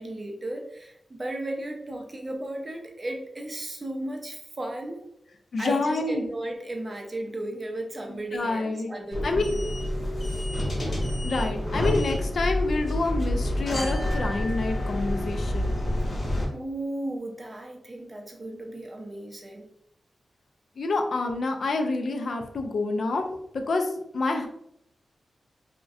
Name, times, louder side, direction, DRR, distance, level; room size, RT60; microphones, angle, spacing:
voice 1, 0.0-5.0 5.6-9.7 16.5-19.7, right 1 dB, 30° right, 2 dB, 0.5 m, -35 dB
voice 2, 5.5-6.2 8.1-8.9 9.2-9.6 11.2-15.7 20.8-23.3 23.5-24.5, left 3 dB, 70° left, 4 dB, 0.3 m, -28 dB
sound 1, 9.1-16.5, left 1 dB, 35° left, 1.0 m, -28 dB
2.6 x 2.1 x 2.3 m, 0.75 s
cardioid pair, 75°, 0 cm